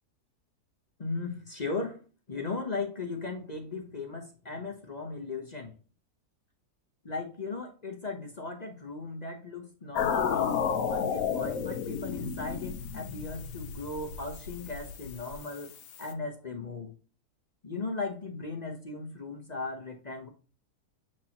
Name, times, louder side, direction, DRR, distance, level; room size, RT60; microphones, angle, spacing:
voice 1, 1.0-2.0 2.3-5.8 7.0-17.0 17.6-20.3, left 3 dB, 40° left, 4 dB, 0.6 m, -37 dB
sound 1, 10.0-16.1, left 7 dB, 65° left, 1.1 m, -32 dB
7.4 x 4.6 x 2.9 m, 0.35 s
omnidirectional pair, 1.7 m